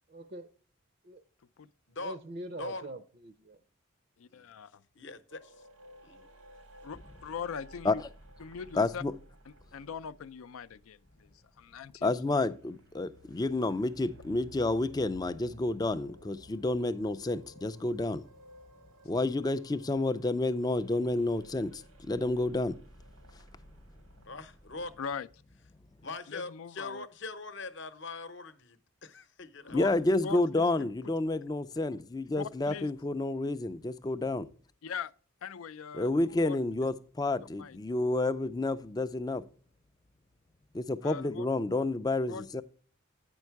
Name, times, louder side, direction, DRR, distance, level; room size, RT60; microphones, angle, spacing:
voice 1, 0.1-0.5 1.0-1.2 2.0-3.6, right 1 dB, 45° right, 0.5 m, -43 dB
voice 2, 2.6-2.9 4.3-4.4 4.9-5.5 6.0-6.3 24.3-24.9 26.0-29.8, left 3 dB, 55° left, 0.8 m, -42 dB
voice 3, 4.2-4.8 6.8-8.0 8.4-9.0 9.7-12.2 25.0-25.3 26.3-27.1 29.6-29.9 30.2-30.9 32.4-32.9 34.8-35.1 35.4-36.6 37.6-37.8 41.0-41.5 42.3-42.5, left 6 dB, 85° left, 0.4 m, -41 dB
sound 1, 5.3-12.0 12.4-25.0, equal, 85° right, 1.4 m, -56 dB
voice 4, 8.8-9.1 12.0-18.2 19.0-22.8 29.7-34.5 35.9-39.4 40.7-42.6, left 2 dB, 20° left, 0.3 m, -30 dB
9.0 x 5.3 x 4.6 m
head